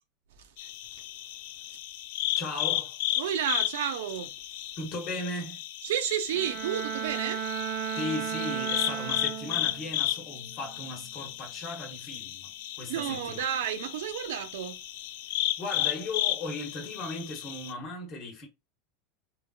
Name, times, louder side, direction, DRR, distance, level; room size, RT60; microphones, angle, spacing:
voice 1, 0.4-1.0 1.7-1.8 3.2-4.3 5.8-7.4 7.7-7.8 12.9-14.8, right 9 dB, 85° right, 0.5 m, -32 dB
sound 1, 0.6-17.7, left 14 dB, 70° left, 0.3 m, -34 dB
voice 2, 2.3-3.0 4.8-5.6 7.9-12.5 12.8-13.4 15.6-18.5, left 2 dB, 35° left, 1.0 m, -37 dB
Bowed string instrument, 6.3-9.9 10.3-10.7, right 9 dB, 40° right, 0.8 m, -34 dB
3.2 x 2.4 x 2.4 m
supercardioid pair, 145°, 0 cm